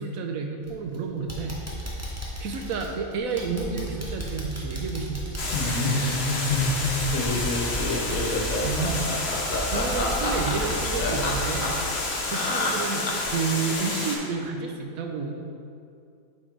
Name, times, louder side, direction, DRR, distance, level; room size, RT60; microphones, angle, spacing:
voice 1, 0.0-1.6 2.4-5.8 8.6-9.1 9.7-11.8 12.3-15.4, right 5 dB, 85° right, 3 dB, 1.1 m, -30 dB
sound 1, 0.6-0.9 1.3-12.9 13.2-13.3 13.8-13.9, right 1 dB, 15° right, 0.7 m, -35 dB
Water, 5.4-14.2, left 2 dB, 55° left, 1.0 m, -30 dB
Laughter, 5.5-13.4, left 2 dB, 70° left, 1.2 m, -27 dB
6.1 x 4.3 x 4.4 m, 2.4 s
omnidirectional pair, 1.4 m